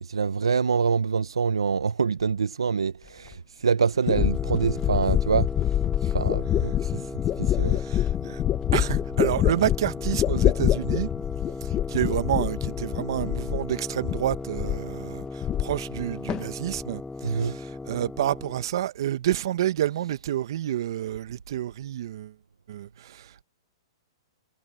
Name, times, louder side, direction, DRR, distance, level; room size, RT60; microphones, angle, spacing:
voice 1, 0.0-5.5 6.0-7.0 7.4-7.8 17.2-17.6, right 5 dB, 85° right, 0.9 m, -25 dB
sound 1, 3.3-3.4 4.1-13.8 14.0-14.9 15.2-16.0 16.3-16.8, left 12 dB, 25° left, 1.2 m, -26 dB
sound 2, 4.1-18.7, left 3 dB, 5° left, 2.7 m, -37 dB
voice 2, 7.6-8.4 8.7-11.1 11.6-22.3 22.7-23.4, right 12 dB, 60° right, 1.4 m, -29 dB
hypercardioid pair, 125°, 3 cm